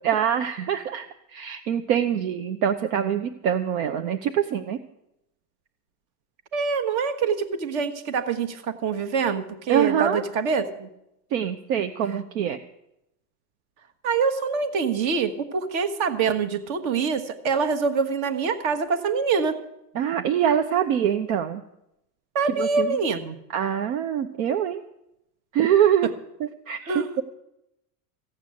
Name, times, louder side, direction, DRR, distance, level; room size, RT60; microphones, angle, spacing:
voice 1, 0.0-4.8 9.7-10.2 11.3-12.6 19.9-21.6 22.6-23.0 23.5-24.8 25.5-26.1 26.4-27.2, right 9 dB, 65° right, 6 dB, 0.9 m, -24 dB
voice 2, 6.5-10.9 14.0-19.6 22.3-23.4 26.8-27.1, right 5 dB, 45° right, 10 dB, 1.4 m, -25 dB
15.5 x 8.9 x 7.7 m, 0.84 s
supercardioid pair, 160°, 45 cm